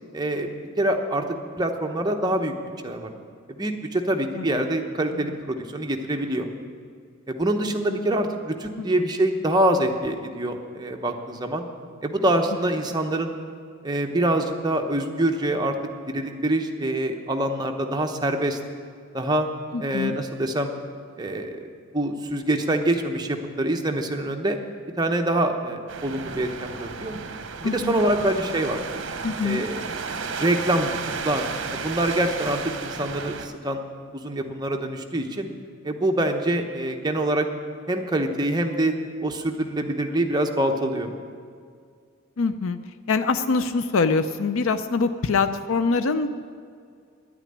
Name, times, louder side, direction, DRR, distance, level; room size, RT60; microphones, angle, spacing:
voice 1, 0.1-0.5 0.8-1.3 1.6-2.5 2.8-3.1 3.5-6.5 7.3-11.7 12.0-13.3 13.8-15.8 16.0-18.6 19.1-19.5 19.8-20.7 21.2-24.6 25.0-27.2 27.6-28.8 29.4-29.8 30.4-30.9 31.2-33.8 34.1-35.5 35.8-37.5 37.9-38.9 39.2-41.1, right 1 dB, 20° right, 3 dB, 0.9 m, -25 dB
voice 2, 19.7-20.2 27.6-28.0 29.2-29.6 42.4-42.8 43.1-46.3, left 4 dB, 70° left, 10 dB, 0.5 m, -24 dB
sound 1, 25.9-33.5, right 5 dB, 60° right, 0.9 m, -33 dB
10.5 x 9.0 x 10.0 m, 2.2 s
head